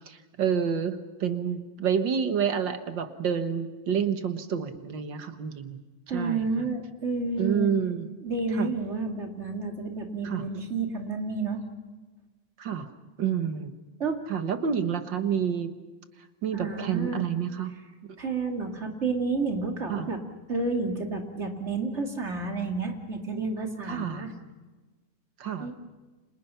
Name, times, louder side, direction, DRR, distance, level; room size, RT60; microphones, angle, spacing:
voice 1, 0.1-5.8 6.1-6.6 7.4-8.1 8.5-8.7 10.2-10.4 12.6-12.9 13.2-13.7 14.3-15.7 16.4-17.7 19.9-20.1 23.9-24.3 25.4-25.7, right 7 dB, 70° right, 8 dB, 2.1 m, -29 dB
voice 2, 6.1-7.7 8.2-11.6 14.0-14.2 16.5-17.2 18.2-20.2 20.5-24.3 25.6-25.7, right 3 dB, 35° right, 3 dB, 2.9 m, -30 dB
30.0 x 27.0 x 5.8 m, 1.2 s
omnidirectional pair, 2.1 m